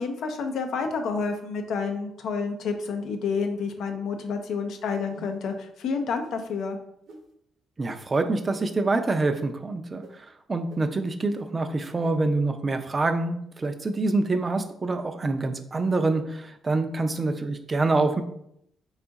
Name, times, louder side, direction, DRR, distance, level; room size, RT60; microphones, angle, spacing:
voice 1, 0.0-6.8, left 5 dB, 75° left, 5 dB, 0.5 m, -29 dB
sound 1, 5.0-5.5 6.2-6.4 7.1-7.2 7.9-8.0 8.6-8.7 9.3-9.4 10.0-10.1 10.7-10.8 11.4-11.5 12.0-12.1, right 3 dB, 65° right, 0.8 m, -46 dB
voice 2, 7.8-18.2, right 3 dB, 30° right, 7 dB, 0.4 m, -26 dB
3.6 x 2.4 x 3.9 m, 0.73 s
cardioid pair, 90°, 0 cm